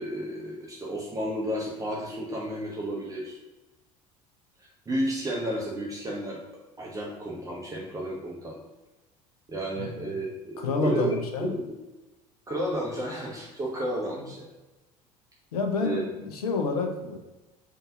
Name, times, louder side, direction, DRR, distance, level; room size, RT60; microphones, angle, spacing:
voice 1, 0.0-3.4 4.9-6.4 6.8-8.6 9.5-11.7 12.5-14.5 15.8-16.0, right 1 dB, 15° right, -3 dB, 0.7 m, -32 dB
voice 2, 9.7-10.1 10.6-11.6 15.5-17.2, left 4 dB, 70° left, 3 dB, 0.7 m, -29 dB
3.9 x 2.7 x 3.7 m, 1.1 s
figure-of-eight pair, 70°, 20 cm